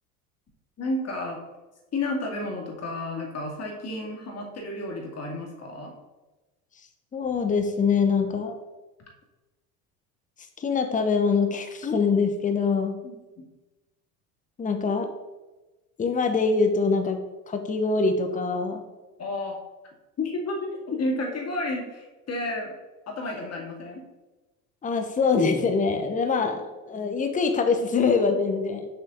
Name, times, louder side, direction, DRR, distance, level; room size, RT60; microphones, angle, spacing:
voice 1, 0.8-1.4 1.9-5.9 13.0-13.4 19.2-19.5 20.2-22.7 23.1-24.0, left 2 dB, 30° left, 0 dB, 2.3 m, -31 dB
voice 2, 7.1-8.6 10.6-13.0 14.6-15.1 16.0-17.2 17.5-18.8 24.8-28.9, left 4 dB, 15° left, 6 dB, 0.9 m, -24 dB
6.8 x 5.5 x 3.9 m, 1.1 s
hypercardioid pair, 75°, 47 cm